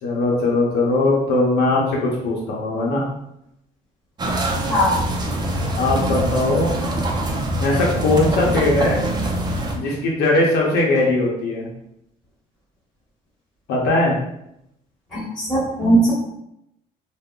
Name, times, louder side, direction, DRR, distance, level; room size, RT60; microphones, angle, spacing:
voice 1, 0.0-3.0 5.8-6.7 7.6-9.0 9.7-11.7 13.7-14.1, left 2 dB, 80° left, -3 dB, 0.7 m, -19 dB
sound 1, 4.2-9.8, right 1 dB, 25° right, 0.5 m, -24 dB
voice 2, 15.1-16.1, right 1 dB, 5° left, -7 dB, 1.3 m, -19 dB
3.6 x 2.0 x 2.3 m, 0.81 s
cardioid pair, 110°, 17 cm